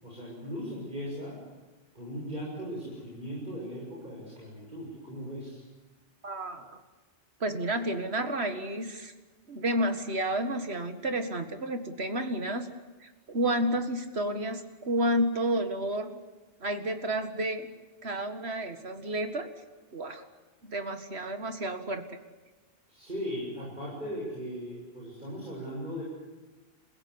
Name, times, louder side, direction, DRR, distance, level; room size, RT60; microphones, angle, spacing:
voice 1, 0.0-1.4 1.9-5.6 22.9-26.0, equal, 50° right, -5 dB, 7.5 m, -38 dB
voice 2, 6.2-6.8 7.4-9.1 9.5-12.7 13.0-16.2 16.6-17.7 18.0-19.5 19.9-20.2 20.6-22.0, right 1 dB, 85° right, 7 dB, 2.2 m, -31 dB
29.5 x 16.0 x 9.8 m, 1.2 s
omnidirectional pair, 1.0 m